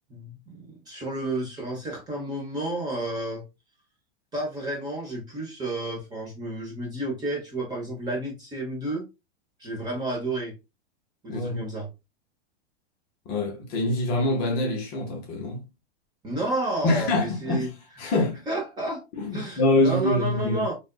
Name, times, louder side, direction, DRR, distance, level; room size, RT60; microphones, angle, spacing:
voice 1, 0.1-3.4 4.3-9.1 9.6-10.5 11.2-11.9 16.2-17.7 18.0-18.1 18.5-19.0 19.3-20.8, right 2 dB, 10° right, 0.8 m, -31 dB
voice 2, 11.3-11.7 13.3-15.7 16.8-17.7 18.0-18.4 19.1-20.7, left 2 dB, 30° left, 0.7 m, -25 dB
3.4 x 2.5 x 2.2 m
supercardioid pair, 155°, 32 cm